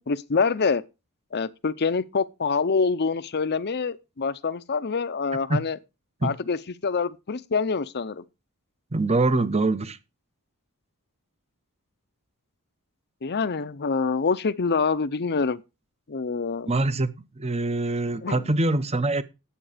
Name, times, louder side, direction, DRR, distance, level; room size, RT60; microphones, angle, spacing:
voice 1, 0.1-0.8 1.3-5.8 6.2-6.6 6.8-8.2 13.2-15.6 16.1-16.7 18.2-18.4, left 4 dB, 50° left, 0.7 m, -26 dB
voice 2, 8.9-10.0 16.7-17.1 17.4-19.2, right 2 dB, 30° right, 0.8 m, -24 dB
10.0 x 8.4 x 5.0 m
head